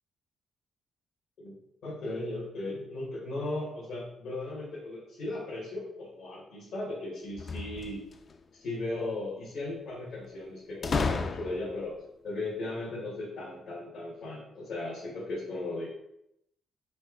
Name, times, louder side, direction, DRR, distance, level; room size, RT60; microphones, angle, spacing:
voice 1, 1.8-8.0 8.5-12.0 12.2-15.9, left 2 dB, 75° left, -7 dB, 1.5 m, -37 dB
sound 1, 7.3-8.4 10.8-11.9, left 4 dB, 40° left, 0.4 m, -32 dB
4.2 x 3.0 x 3.8 m, 0.82 s
cardioid pair, 90°, 0 cm